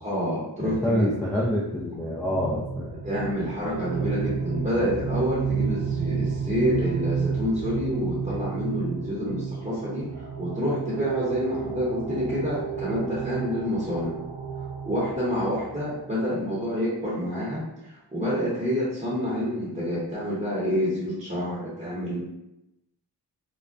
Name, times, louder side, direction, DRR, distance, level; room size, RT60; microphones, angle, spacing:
voice 1, 0.0-1.1 3.0-14.2 14.8-22.2, equal, 20° right, -8 dB, 0.9 m, -28 dB
voice 2, 0.6-2.9, equal, 5° left, -8 dB, 0.5 m, -26 dB
sound 1, 1.9-16.6, right 6 dB, 70° right, 0.6 m, -31 dB
2.3 x 2.1 x 2.5 m, 0.89 s
cardioid pair, 50°, 42 cm